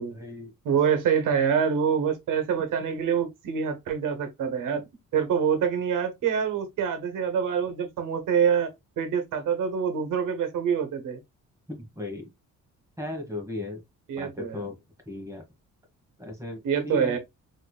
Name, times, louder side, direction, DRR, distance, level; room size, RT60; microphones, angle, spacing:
voice 1, 0.0-0.5 11.7-12.3 13.0-13.8 14.2-14.8 15.1-15.4 16.2-17.2, left 2 dB, 10° right, 1.3 m, -36 dB
voice 2, 0.6-4.9 5.1-8.7 9.0-11.2 14.1-14.6 16.6-17.2, right 7 dB, 80° right, 1.2 m, -26 dB
4.1 x 3.0 x 2.3 m
cardioid pair, 90°, 32 cm